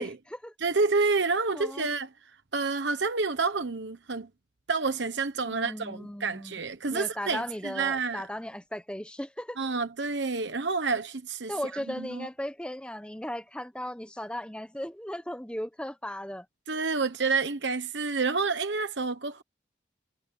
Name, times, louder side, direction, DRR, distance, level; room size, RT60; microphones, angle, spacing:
voice 1, 0.0-0.5 1.5-1.9 5.5-6.6 6.9-9.6 11.5-16.5, equal, 5° left, 1.1 m, -37 dB
voice 2, 0.6-2.1 2.5-4.3 4.7-8.3 9.6-11.5 11.9-12.3 16.7-19.4, right 4 dB, 75° right, 1.1 m, -29 dB
head